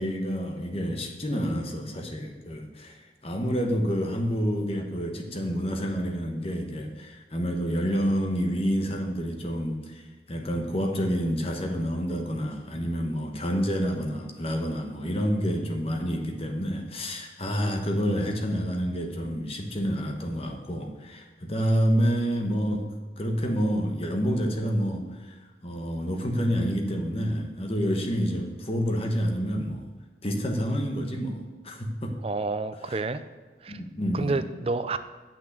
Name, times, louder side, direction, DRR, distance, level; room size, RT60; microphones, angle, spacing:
voice 1, 0.0-10.0 10.3-22.9 23.2-25.4 25.6-29.9 30.2-32.1 32.9-33.0 33.7-34.4, equal, 35° left, 3 dB, 1.3 m, -28 dB
voice 2, 32.2-33.2 33.6-33.8 34.1-35.0, right 3 dB, 30° right, 11 dB, 0.5 m, -29 dB
9.0 x 6.0 x 8.3 m, 1.4 s
head